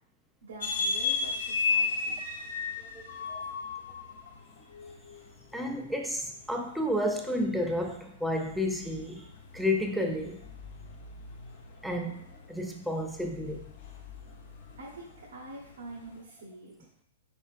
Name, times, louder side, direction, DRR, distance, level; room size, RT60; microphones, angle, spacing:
voice 1, 0.4-2.2 14.8-16.7, right 2 dB, 90° right, -4 dB, 1.2 m, -45 dB
sound 1, 0.6-16.2, left 4 dB, 65° left, 0.8 m, -36 dB
voice 2, 2.8-3.4 5.5-9.3 9.5-10.5 11.8-12.2 12.5-13.7, left 1 dB, ahead, 2 dB, 0.4 m, -31 dB
4.3 x 4.3 x 2.4 m, 0.68 s
hypercardioid pair, 155°, 0 cm